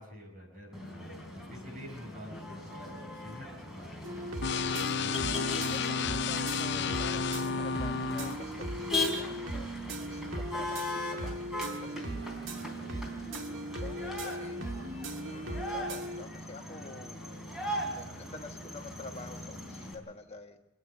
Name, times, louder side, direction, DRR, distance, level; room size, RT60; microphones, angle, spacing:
voice 1, 0.0-4.1 10.4-10.7 12.2-13.1 13.4-14.5, equal, 45° right, 1 dB, 7.7 m, -49 dB
Motor vehicle (road), 0.7-19.9, left 1 dB, 5° right, 3.9 m, -39 dB
sound 1, 4.0-16.2, right 1 dB, 70° right, 1.9 m, -39 dB
sound 2, 4.4-8.4, left 5 dB, 60° left, 0.6 m, -32 dB
voice 2, 5.3-12.3 13.8-14.6 15.3-17.2 17.9-20.6, left 3 dB, 30° left, 3 dB, 1.6 m, -48 dB
28.0 x 9.6 x 9.7 m, 0.93 s
head